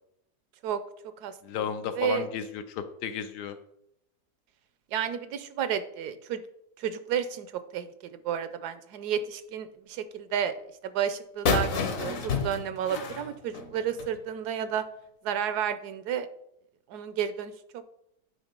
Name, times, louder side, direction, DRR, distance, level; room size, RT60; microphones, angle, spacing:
voice 1, 1.4-3.6, left 8 dB, 85° left, 9 dB, 1.3 m, -33 dB
voice 2, 1.9-2.3 4.9-6.4 6.8-10.5 10.8-14.8 15.2-16.3 16.9-17.8, right 8 dB, 80° right, 12 dB, 1.2 m, -31 dB
sound 1, 11.5-14.2, left 4 dB, 60° left, 1.2 m, -29 dB
8.9 x 3.6 x 5.2 m, 0.76 s
omnidirectional pair, 1.7 m